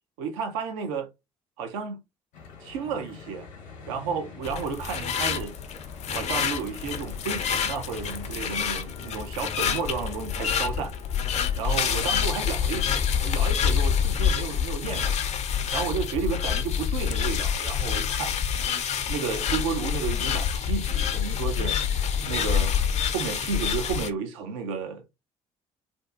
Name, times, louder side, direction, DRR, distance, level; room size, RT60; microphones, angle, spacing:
voice 1, 0.2-1.1 1.6-2.0 2.6-3.5 3.9-5.6 6.1-10.9 11.6-15.2 15.7-18.3 19.1-21.8 22.3-22.8 23.1-25.1, right 6 dB, 70° right, 0.5 m, -32 dB
Church bell / Traffic noise roadway noise, 2.3-12.3, left 3 dB, 75° left, 0.8 m, -45 dB
sound 1, 4.4-24.1, left 8 dB, 40° left, 0.4 m, -27 dB
2.5 x 2.2 x 2.4 m
figure-of-eight pair, 45°, 17 cm